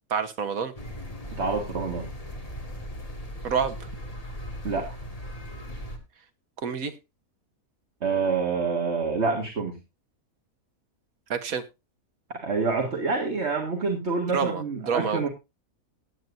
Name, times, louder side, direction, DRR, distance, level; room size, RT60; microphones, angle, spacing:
voice 1, 0.1-0.7 3.4-3.8 6.6-7.0 11.3-11.7 14.3-15.2, right 6 dB, 80° right, 8 dB, 1.6 m, -28 dB
sound 1, 0.8-6.0, equal, 25° left, 1.9 m, -38 dB
voice 2, 1.3-2.1 4.6-4.9 8.0-9.7 12.3-15.3, right 4 dB, 50° right, 2 dB, 2.1 m, -27 dB
17.5 x 9.2 x 2.6 m, 0.25 s
omnidirectional pair, 1.5 m